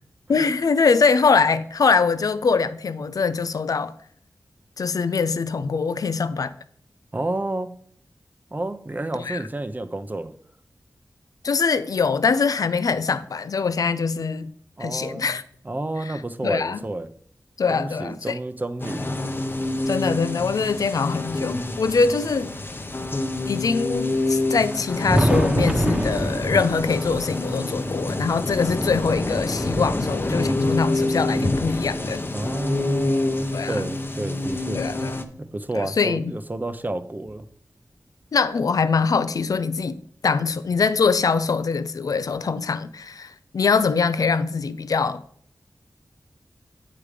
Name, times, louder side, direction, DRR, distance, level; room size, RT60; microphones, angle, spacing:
voice 1, 0.3-3.9 4.8-6.5 9.1-9.4 11.4-14.5 14.8-15.4 16.0-16.8 17.6-18.4 19.9-22.5 23.5-32.2 33.5-33.9 34.7-35.2 35.7-36.3 38.3-45.2, left 5 dB, 75° left, 0.5 m, -23 dB
voice 2, 7.1-7.7 8.5-10.3 14.8-17.1 17.7-19.2 32.3-34.8 35.4-37.4, right 2 dB, 30° right, 0.7 m, -30 dB
sound 1, 18.8-35.2, left 2 dB, 35° left, 0.8 m, -27 dB
Thunder, 24.6-33.1 33.8-35.5 36.6-36.7 37.3-37.4 39.3-39.4 40.7-40.8 42.4-42.5, equal, 10° right, 1.2 m, -29 dB
8.6 x 4.9 x 5.0 m
cardioid pair, 55°, 6 cm